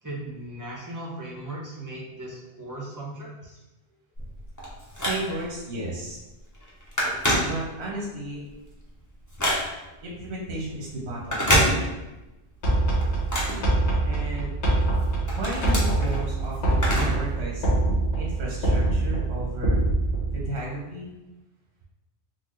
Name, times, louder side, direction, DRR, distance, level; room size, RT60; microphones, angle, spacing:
voice 1, 0.0-3.6, right 1 dB, 20° right, -6 dB, 0.6 m, -37 dB
Telephone, 4.2-5.6 6.1-6.3 6.5-8.0 8.5-10.0 11.2-12.3 12.6-14.4 14.8-17.3 17.6-17.7 18.6-18.7, equal, 20° left, 0.6 m, -27 dB
voice 2, 5.0-6.2 7.4-8.5 10.0-11.6 11.9-12.1 14.0-14.5 15.2-17.7 18.1-19.8 20.3-21.1, right 1 dB, 80° right, -3 dB, 1.0 m, -33 dB
sound 1, 12.6-20.5, right 2 dB, 85° left, 1.1 m, -24 dB
4.0 x 2.1 x 3.0 m, 1.0 s
omnidirectional pair, 1.1 m